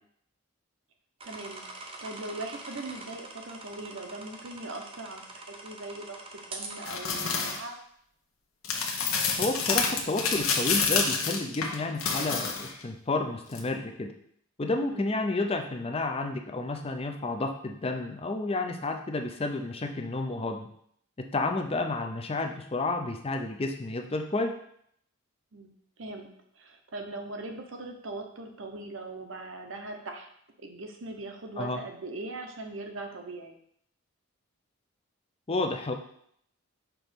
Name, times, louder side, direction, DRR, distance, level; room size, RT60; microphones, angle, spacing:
sound 1, 1.2-6.9, right 2 dB, 25° right, 0.7 m, -44 dB
voice 1, 1.2-7.8 14.9-15.1 25.5-26.3 26.5-30.3 30.6-33.6, right 2 dB, 60° right, 4 dB, 0.8 m, -40 dB
sound 2, 6.8-7.6 8.6-12.8 13.5-13.6, left 5 dB, 75° left, 1.0 m, -28 dB
voice 2, 9.4-14.1 14.6-20.7 21.2-24.5 31.6-31.8 35.5-35.9, left 2 dB, 25° left, 4 dB, 0.5 m, -31 dB
6.0 x 3.0 x 5.1 m, 0.68 s
head